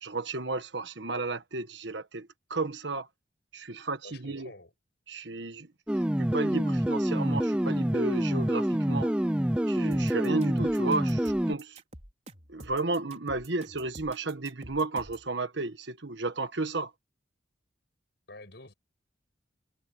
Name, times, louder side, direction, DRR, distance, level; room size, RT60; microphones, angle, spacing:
voice 1, 0.0-3.1 3.5-4.5 5.1-5.7 6.2-9.1 9.7-11.8 12.5-16.9, right 3 dB, 65° right, 1.4 m, -33 dB
voice 2, 4.0-4.7 18.3-18.7, left 2 dB, 60° left, 7.2 m, -48 dB
sound 1, 5.9-11.5, equal, 5° right, 0.4 m, -27 dB
sound 2, 9.9-15.3, right 1 dB, 35° right, 4.8 m, -48 dB
head